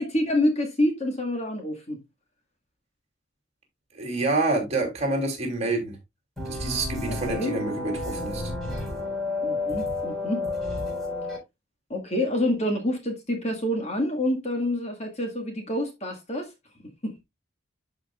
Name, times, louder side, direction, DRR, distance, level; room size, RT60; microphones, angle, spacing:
voice 1, 0.0-2.0 7.0-7.6 9.4-10.4 11.9-16.5 17.0-17.2, left 1 dB, 35° left, 1.9 m, -27 dB
voice 2, 3.9-5.9 6.4-8.5, right 2 dB, 30° right, 3.1 m, -27 dB
sound 1, 6.4-11.4, left 2 dB, ahead, 3.9 m, -31 dB
12.0 x 5.0 x 2.4 m
head